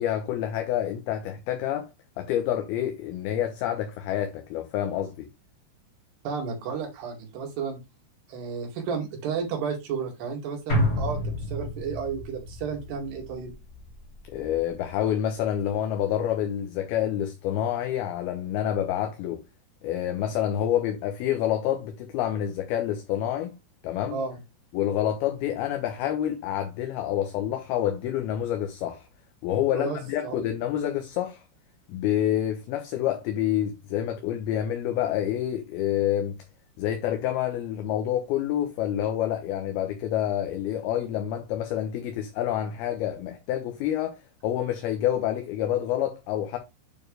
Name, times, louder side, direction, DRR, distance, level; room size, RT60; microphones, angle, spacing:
voice 1, 0.0-1.9 2.2-5.3 14.3-19.4 19.8-23.5 23.8-24.2 24.7-29.1 29.4-31.4 31.9-36.3 36.8-44.1 44.4-46.6, left 11 dB, 75° left, 2.6 m, -28 dB
voice 2, 6.2-7.8 8.3-11.2 11.5-13.5 24.1-24.4 29.7-30.5, right 6 dB, 70° right, 4.1 m, -32 dB
sound 1, 10.7-15.1 15.5-15.6, left 1 dB, 40° left, 0.9 m, -31 dB
9.0 x 4.5 x 3.3 m
omnidirectional pair, 5.0 m